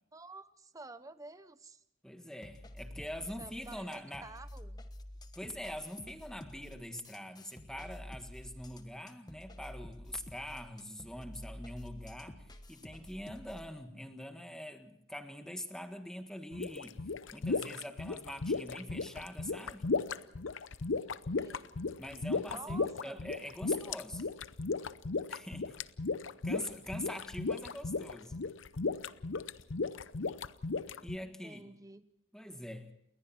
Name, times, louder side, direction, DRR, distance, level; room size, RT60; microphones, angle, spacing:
voice 1, 0.1-1.8 3.0-3.1 3.4-4.8 21.4-21.7 22.4-23.3 31.2-32.0, right 3 dB, 15° right, 13 dB, 0.9 m, -50 dB
voice 2, 2.0-4.3 5.4-17.0 17.3-19.9 22.0-24.3 25.3-25.8 26.4-28.4 30.9-31.7 32.3-32.9, left 1 dB, 5° left, 7 dB, 1.7 m, -44 dB
sound 1, 2.4-13.7, left 1 dB, 20° left, 1.3 m, -49 dB
sound 2, 16.5-31.2, left 4 dB, 70° left, 0.8 m, -35 dB
29.5 x 21.0 x 4.4 m, 0.77 s
head